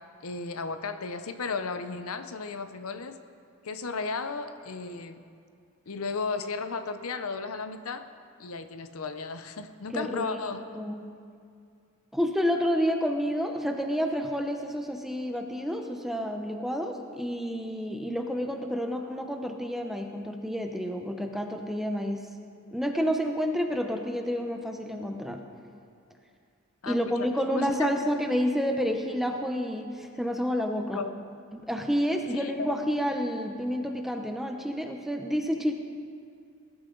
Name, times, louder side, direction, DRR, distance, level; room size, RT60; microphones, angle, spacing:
voice 1, 0.2-3.2 3.6-5.2 5.9-8.1 8.4-10.8 26.8-27.3 27.5-28.1 30.7-31.1 32.3-32.7, left 4 dB, 85° left, 10 dB, 0.7 m, -34 dB
voice 2, 9.9-10.4 10.7-11.1 12.1-22.3 22.7-25.4 26.9-31.0 31.5-35.7, equal, ahead, 4 dB, 0.8 m, -29 dB
20.0 x 12.0 x 3.9 m, 2.3 s
head